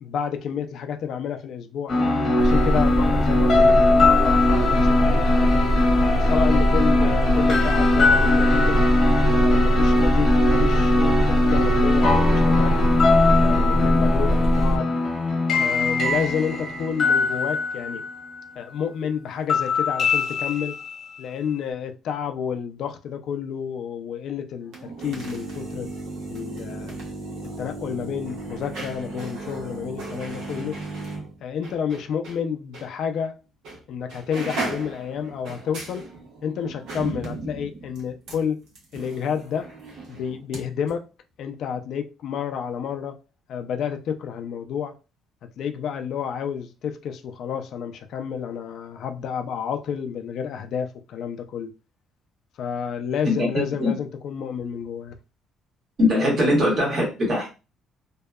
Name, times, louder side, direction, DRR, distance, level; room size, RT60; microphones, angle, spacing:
voice 1, 0.0-1.9 2.4-5.6 6.1-8.8 9.3-12.8 13.4-15.0 15.6-18.0 18.6-20.8 21.2-25.9 26.3-27.0 27.6-30.8 31.4-33.3 33.9-36.1 36.4-38.6 38.9-39.7 40.1-41.1 41.4-43.2 43.5-44.9 45.6-51.7 52.6-55.1, left 7 dB, 55° left, 0.3 m, -30 dB
sound 1, 1.9-18.5 19.5-21.2, left 2 dB, 35° left, 1.1 m, -21 dB
sound 2, 2.4-14.8, equal, 10° right, 0.4 m, -22 dB
sound 3, 24.6-32.4 32.7-32.9 33.6-33.8 34.1-40.6 40.9-41.0, right 2 dB, 80° right, 1.0 m, -35 dB
voice 2, 53.2-53.9 56.0-57.5, left 1 dB, 35° right, 1.1 m, -21 dB
2.7 x 2.2 x 2.2 m
cardioid pair, 165°, 0 cm